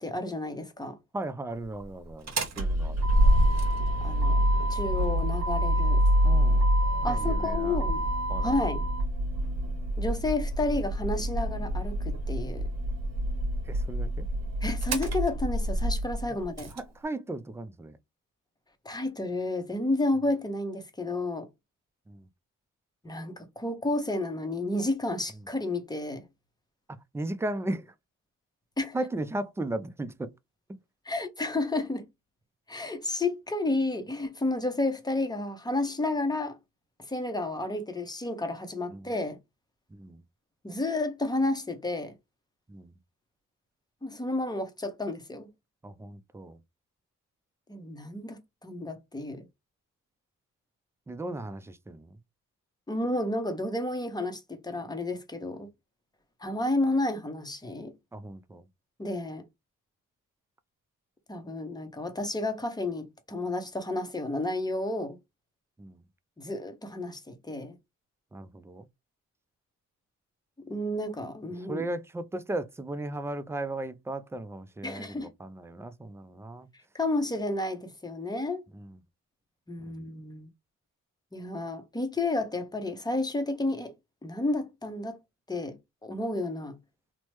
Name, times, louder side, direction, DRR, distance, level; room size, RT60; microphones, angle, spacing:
voice 1, 0.0-1.0 4.0-6.0 7.0-8.0 8.4-8.9 10.0-12.7 14.6-16.7 18.8-21.5 23.0-26.3 28.8-29.0 31.1-32.0 32.7-36.6 37.1-39.4 40.6-42.1 44.0-45.5 47.7-49.4 52.9-55.7 56.4-57.9 59.0-59.4 61.3-65.2 66.4-67.8 70.6-71.9 74.8-75.3 76.9-78.6 79.7-80.5 81.3-83.9 84.2-85.2 85.5-86.8, left 2 dB, 10° left, 0.7 m, -31 dB
voice 2, 1.1-3.0 3.3-3.6 6.2-6.7 7.0-7.8 8.3-8.5 13.7-14.3 16.7-18.0 22.1-22.2 27.1-27.9 28.9-30.3 38.9-39.1 39.9-40.2 42.7-42.9 45.8-46.6 51.1-52.2 58.1-58.6 65.8-66.0 68.3-68.9 71.7-76.7 78.7-78.9, right 2 dB, 10° right, 0.3 m, -36 dB
Motor vehicle (road), 2.1-16.8, right 1 dB, 55° right, 1.0 m, -26 dB
3.0 x 2.1 x 3.1 m
cardioid pair, 80°, 33 cm